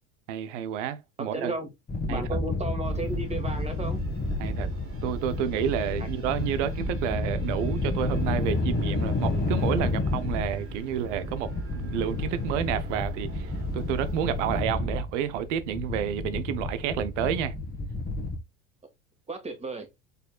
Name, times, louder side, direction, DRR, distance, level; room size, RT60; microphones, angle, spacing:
voice 1, 0.3-1.5 2.1-2.4 4.4-4.7 5.0-17.5, right 10 dB, 75° right, 0.8 m, -30 dB
voice 2, 1.2-1.7 2.0-4.0 6.0-6.1 19.3-19.9, right 2 dB, 15° right, 1.8 m, -34 dB
sound 1, 1.9-18.4, left 2 dB, 25° left, 1.5 m, -30 dB
sound 2, 2.8-14.6, right 3 dB, 35° right, 2.3 m, -42 dB
5.4 x 4.2 x 2.3 m
hypercardioid pair, 90°, 37 cm